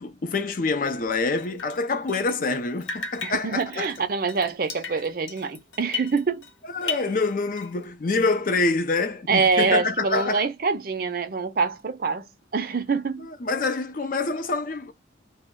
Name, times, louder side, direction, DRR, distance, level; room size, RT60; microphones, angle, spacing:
voice 1, 0.0-3.9 6.7-10.5 13.2-14.9, left 3 dB, 45° left, 0.4 m, -26 dB
Drip, 1.4-2.6 2.8-6.5 6.8-7.8, left 6 dB, 80° left, 0.9 m, -36 dB
voice 2, 3.2-6.4 9.3-12.3 12.5-13.3, right 4 dB, 50° right, 0.5 m, -25 dB
2.2 x 2.1 x 3.5 m
head